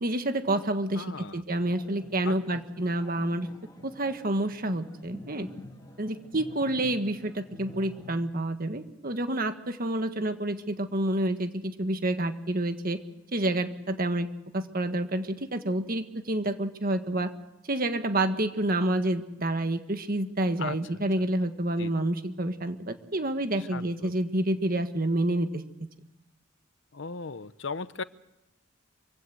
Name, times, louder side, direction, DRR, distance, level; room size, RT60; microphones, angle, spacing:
voice 1, 0.0-3.5 3.8-5.5 6.0-13.0 13.3-14.3 14.5-17.3 17.7-25.6, right 1 dB, 45° right, 8 dB, 1.6 m, -28 dB
voice 2, 1.0-1.4 2.2-2.6 20.6-20.8 21.8-21.9 23.6-24.1 26.9-28.0, left 4 dB, 65° left, 15 dB, 0.8 m, -37 dB
sound 1, 1.5-8.1, left 1 dB, 20° left, 2.3 m, -48 dB
26.0 x 16.5 x 7.8 m, 0.90 s
head